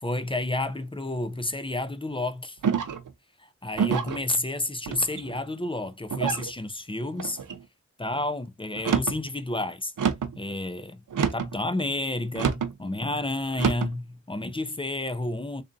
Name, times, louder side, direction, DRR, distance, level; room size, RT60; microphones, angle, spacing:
voice 1, 0.0-2.6 3.4-7.4 8.0-9.9 10.4-11.0 11.3-15.6, left 2 dB, 15° left, 0.6 m, -30 dB
sound 1, 2.6-3.1 3.7-4.2 4.9-5.4 6.1-6.5 7.2-7.6 8.7-9.2 10.0-10.4 11.1-11.6 12.3-12.7 13.5-13.9, right 7 dB, 65° right, 0.6 m, -27 dB
3.5 x 2.6 x 3.8 m
cardioid pair, 45°, 34 cm